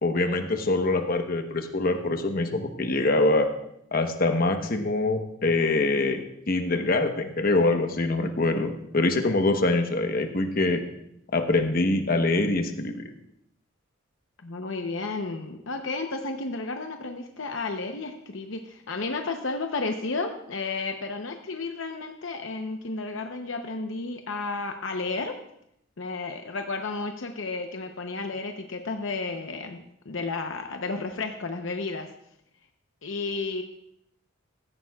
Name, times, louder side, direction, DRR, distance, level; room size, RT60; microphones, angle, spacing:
voice 1, 0.0-3.5 3.9-6.2 6.5-10.8 11.3-13.0, left 2 dB, 45° left, 5 dB, 1.1 m, -24 dB
voice 2, 14.4-25.4 26.0-32.1 33.0-33.6, left 3 dB, 70° left, 5 dB, 0.8 m, -32 dB
16.5 x 14.0 x 2.4 m, 0.76 s
head